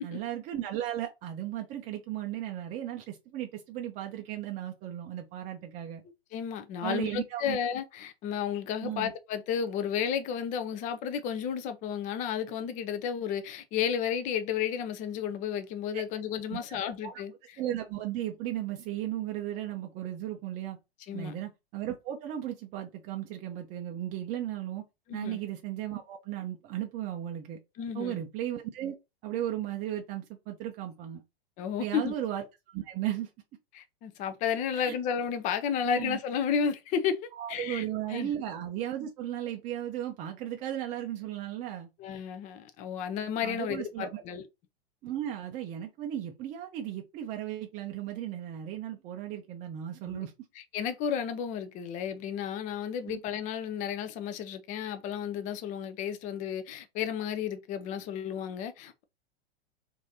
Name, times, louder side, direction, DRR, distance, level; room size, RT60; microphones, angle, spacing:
voice 1, 0.0-6.0 6.8-7.6 8.8-9.1 15.9-16.0 16.5-17.2 17.6-20.8 21.1-24.8 25.1-27.6 27.9-28.9 29.2-31.2 31.8-33.3 34.7-35.0 35.8-36.2 37.3-41.9 43.4-44.2 45.0-50.3 53.1-53.2, right 12 dB, 25° right, 0.5 m, -36 dB
voice 2, 6.3-17.3 21.1-21.3 25.1-25.4 27.8-28.2 31.6-32.2 33.7-37.8 38.1-38.3 42.0-44.5 50.0-50.3 50.7-59.0, left 8 dB, 25° left, 0.5 m, -32 dB
3.1 x 2.6 x 3.9 m
figure-of-eight pair, 100°, 31 cm